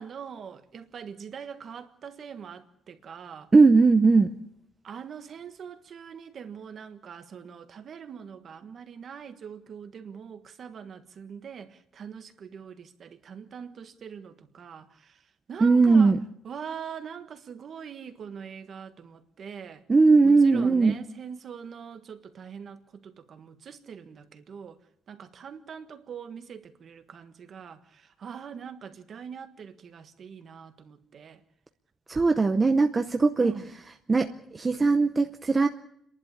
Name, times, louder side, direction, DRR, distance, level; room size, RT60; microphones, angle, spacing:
voice 1, 0.0-3.5 4.8-16.2 16.4-19.8 20.2-24.8 25.1-31.4 33.4-33.7, right 7 dB, 40° right, 1.5 m, -43 dB
voice 2, 3.5-4.4 15.6-16.2 19.9-20.9 32.1-33.5 34.1-35.7, right 4 dB, 20° right, 0.7 m, -19 dB
29.5 x 11.5 x 8.7 m
cardioid pair, 170°, 0 cm